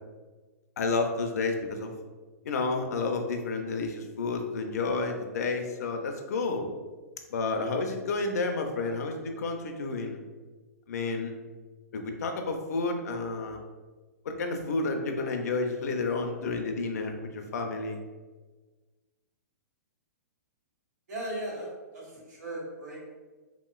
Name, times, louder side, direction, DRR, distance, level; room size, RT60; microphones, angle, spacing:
voice 1, 0.8-1.9 2.4-6.7 7.3-10.2 10.9-11.3 11.9-13.6 14.2-18.0, left 3 dB, 75° left, 4 dB, 0.5 m, -30 dB
voice 2, 21.1-21.7 21.9-23.1, right 1 dB, 90° right, -5 dB, 1.5 m, -37 dB
2.9 x 2.9 x 2.3 m, 1.3 s
hypercardioid pair, 155°, 9 cm